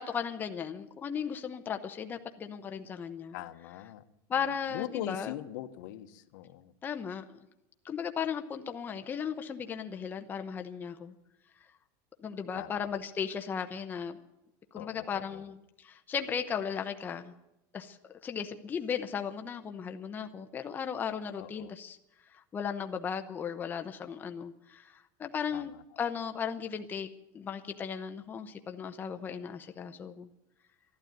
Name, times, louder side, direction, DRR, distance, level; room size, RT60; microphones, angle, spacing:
voice 1, 0.0-3.4 4.3-5.3 6.8-7.4 7.8-11.1 12.2-14.2 14.7-17.3 17.7-18.0 18.2-22.0 22.3-27.1 27.3-30.3, left 7 dB, 20° left, 7 dB, 0.8 m, -36 dB
voice 2, 3.3-4.0 4.7-6.7 12.6-12.8 14.7-15.4 21.4-21.7 25.5-25.7, left 13 dB, 80° left, 10 dB, 1.1 m, -41 dB
13.0 x 12.0 x 9.1 m, 0.89 s
cardioid pair, 160°, 10 cm